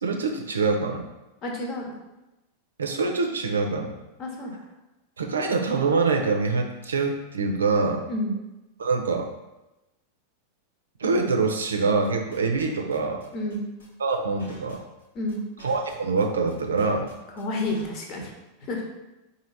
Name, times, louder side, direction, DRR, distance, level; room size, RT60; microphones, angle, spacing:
voice 1, 0.0-1.0 2.8-3.9 5.2-8.0 8.8-9.3 11.0-13.2 14.0-14.8 15.6-17.1, right 4 dB, 70° right, 3 dB, 0.6 m, -25 dB
voice 2, 1.4-2.0 4.2-4.6 8.1-8.4 13.3-13.7 15.1-15.4 17.4-18.3 18.7-18.8, left 1 dB, 35° left, 1 dB, 1.0 m, -30 dB
sound 1, 12.0-18.0, left 1 dB, 65° left, 1.0 m, -50 dB
4.5 x 2.8 x 3.9 m, 0.99 s
figure-of-eight pair, 90°, 0 cm